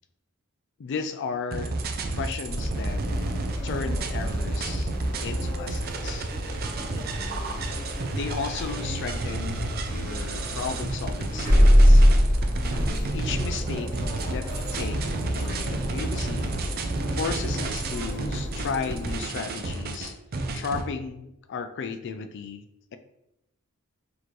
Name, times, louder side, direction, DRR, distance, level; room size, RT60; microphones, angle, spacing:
voice 1, 0.8-1.8 2.1-3.0 3.6-4.9 5.2-6.3 8.1-12.1 13.1-13.9 14.3-15.0 15.3-16.8 17.1-20.2 20.5-23.0, left 5 dB, 55° left, 9 dB, 0.4 m, -34 dB
sound 1, 1.5-20.8, right 2 dB, 45° right, 0.5 m, -31 dB
sound 2, 2.4-19.2, equal, 10° left, 1.2 m, -26 dB
4.2 x 2.8 x 3.1 m, 0.86 s
head